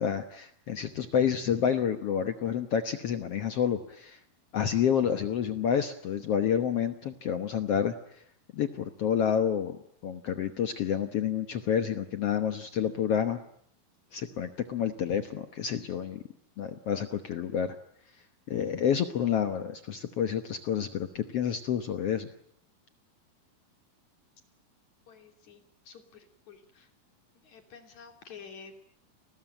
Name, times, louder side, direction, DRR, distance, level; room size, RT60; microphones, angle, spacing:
voice 1, 0.0-4.2 4.5-7.9 8.5-13.4 14.1-16.2 16.6-17.8 18.5-22.3, left 8 dB, 75° left, 8 dB, 1.3 m, -29 dB
voice 2, 25.1-26.9 27.4-28.7, left 6 dB, 50° left, 6 dB, 4.1 m, -50 dB
30.0 x 20.5 x 9.0 m, 0.71 s
omnidirectional pair, 4.5 m